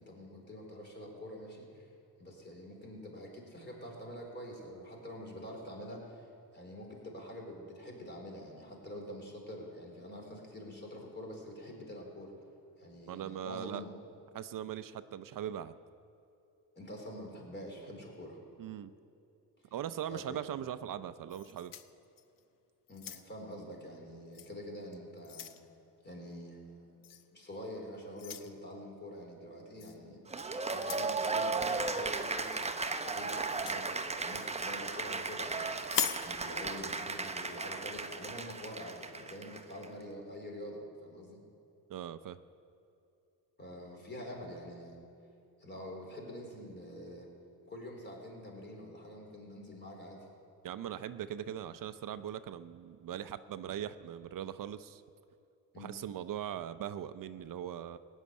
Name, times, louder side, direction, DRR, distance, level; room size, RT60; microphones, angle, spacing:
voice 1, 0.0-1.9 2.2-12.3 12.8-13.9 16.8-18.4 19.6-19.7 20.1-20.4 22.9-25.5 26.0-26.9 27.3-30.2 30.7-41.4 43.6-45.0 45.6-47.3 47.6-50.3 55.7-55.9, equal, 30° left, 0 dB, 3.9 m, -46 dB
voice 2, 13.1-13.8 14.3-15.8 18.6-18.9 19.7-21.7 41.9-42.4 50.6-55.0 55.8-58.0, right 10 dB, 60° right, 12 dB, 0.6 m, -40 dB
sound 1, 21.3-22.4 22.9-23.5 24.3-24.5 24.9-25.6 27.0-27.3 28.2-28.5 29.8-30.0 30.7-31.2 33.4-33.8 35.8-36.3, left 9 dB, 60° left, 0.9 m, -39 dB
Cheering / Applause, 30.3-39.9, right 3 dB, 15° right, 0.8 m, -36 dB
17.0 x 7.4 x 9.5 m, 2.7 s
cardioid pair, 110°, 37 cm